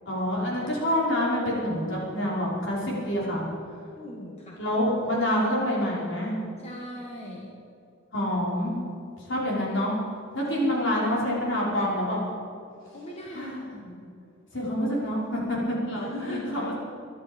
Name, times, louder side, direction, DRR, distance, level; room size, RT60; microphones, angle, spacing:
voice 1, 0.1-3.4 4.6-6.4 8.1-8.8 9.2-10.0 10.3-12.2 13.3-13.8 14.5-16.7, equal, 65° left, -4 dB, 5.3 m, -27 dB
voice 2, 3.9-4.6 6.6-7.5 10.6-10.8 12.9-13.8 16.0-16.7, equal, 30° left, -2 dB, 1.8 m, -39 dB
23.5 x 11.0 x 5.4 m, 2.6 s
head